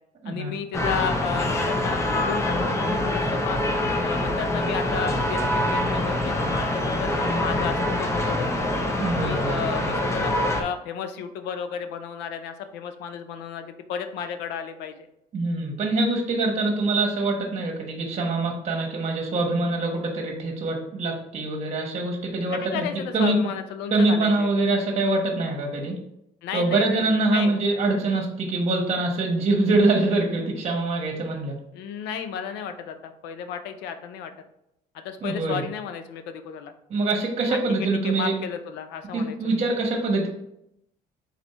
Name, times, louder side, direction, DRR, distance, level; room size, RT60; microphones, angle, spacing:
voice 1, 0.2-3.6 4.0-8.7 9.2-15.1 22.5-24.5 26.4-27.6 31.7-34.3 34.9-36.7 37.5-37.6 38.0-39.6, left 7 dB, 90° left, 8 dB, 0.5 m, -33 dB
sound 1, 0.7-10.6, left 1 dB, 15° left, 0.6 m, -25 dB
voice 2, 9.0-9.9 15.3-22.8 23.1-23.4 23.9-26.0 26.5-31.6 35.2-35.6 36.9-38.3 39.1-40.3, right 2 dB, 40° right, 1 dB, 1.1 m, -24 dB
4.2 x 2.6 x 4.2 m, 0.78 s
cardioid pair, 110°, 17 cm